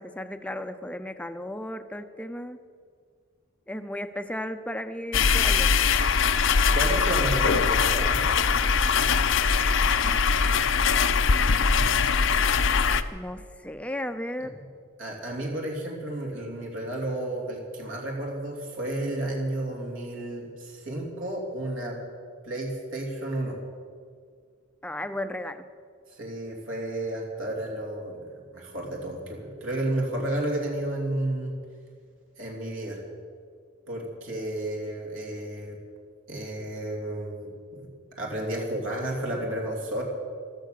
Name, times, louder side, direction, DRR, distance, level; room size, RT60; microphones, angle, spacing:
voice 1, 0.0-2.6 3.7-5.7 9.9-10.2 11.9-12.0 13.1-14.6 24.8-25.7, left 1 dB, 5° left, 9 dB, 0.6 m, -35 dB
sound 1, 5.1-13.0, left 5 dB, 65° left, 0.7 m, -22 dB
voice 2, 6.7-8.2 15.0-22.0 22.4-23.6 26.1-31.5 32.4-33.0 33.9-35.8 36.3-37.9 38.1-40.0, right 1 dB, 70° right, -1 dB, 3.1 m, -32 dB
15.5 x 13.5 x 6.8 m, 2.1 s
head